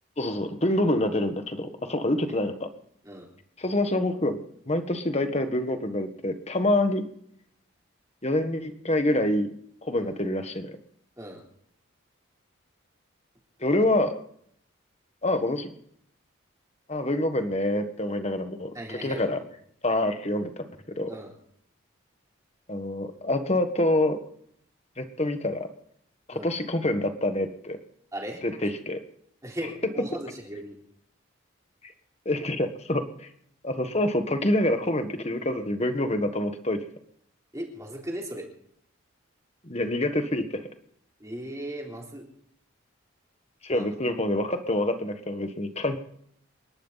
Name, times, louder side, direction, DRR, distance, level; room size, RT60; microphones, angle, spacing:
voice 1, 0.2-2.7 3.6-7.0 8.2-9.5 9.8-10.8 13.6-14.2 15.2-15.7 16.9-19.4 19.8-20.7 21.0-21.1 22.7-24.2 25.0-25.7 26.3-27.8 28.4-29.0 32.2-33.3 33.6-36.8 39.6-40.5 43.6-46.0, left 1 dB, 30° left, 8 dB, 1.4 m, -26 dB
voice 2, 18.7-19.2 21.1-21.3 26.3-26.5 28.1-28.4 29.4-30.7 37.5-38.5 41.2-42.2 43.7-43.9, right 1 dB, 15° right, -1 dB, 3.7 m, -37 dB
29.0 x 11.5 x 4.1 m, 0.68 s
head